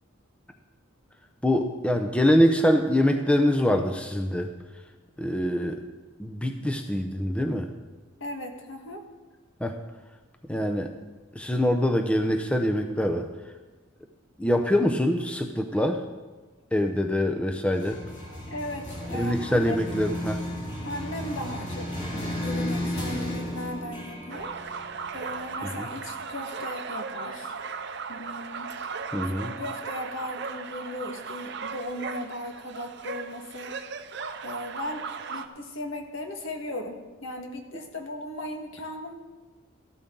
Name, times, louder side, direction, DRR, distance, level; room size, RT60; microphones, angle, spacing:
voice 1, 1.4-4.5 5.2-5.8 6.2-7.7 9.6-9.7 10.5-10.9 11.3-13.3 14.4-16.0 16.7-18.0 19.1-20.4 25.8-25.9 29.1-29.5, equal, 5° left, 4 dB, 0.6 m, -24 dB
voice 2, 8.2-9.0 18.5-19.9 20.8-24.6 25.1-27.5 28.1-28.7 29.4-33.8 34.4-39.1, left 1 dB, 70° left, 3 dB, 1.7 m, -37 dB
sound 1, 17.7-25.7, left 1 dB, 35° left, 3.4 m, -34 dB
sound 2, 24.3-35.5, right 5 dB, 55° right, 0.7 m, -37 dB
14.0 x 12.5 x 3.8 m, 1.2 s
head